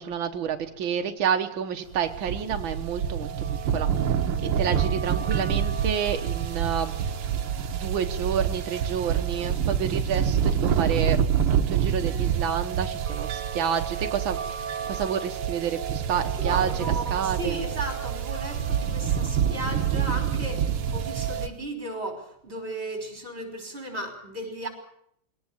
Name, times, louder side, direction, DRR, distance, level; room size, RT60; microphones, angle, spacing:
voice 1, 0.0-3.9 4.6-6.9 7.7-11.2 11.7-16.8 17.1-17.6, right 8 dB, 75° right, 5 dB, 1.1 m, -29 dB
sound 1, 1.9-21.5, right 8 dB, 55° right, 1.6 m, -27 dB
voice 2, 16.4-24.7, right 1 dB, 15° right, 5 dB, 5.5 m, -35 dB
22.0 x 18.0 x 8.9 m, 0.71 s
omnidirectional pair, 3.9 m